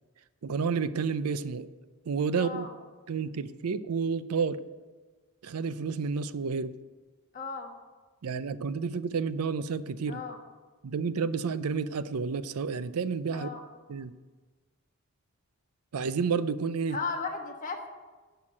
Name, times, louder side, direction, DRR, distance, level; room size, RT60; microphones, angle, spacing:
voice 1, 0.4-1.7 2.1-2.7 3.1-4.6 5.4-6.7 8.2-10.2 10.8-13.5 13.9-14.1 15.9-17.0, right 5 dB, 80° right, 15 dB, 0.5 m, -30 dB
voice 2, 2.3-2.7 7.3-7.7 10.1-10.4 13.3-13.6 16.9-17.9, left 4 dB, 35° left, 3 dB, 1.3 m, -36 dB
11.0 x 5.8 x 8.6 m, 1.3 s
head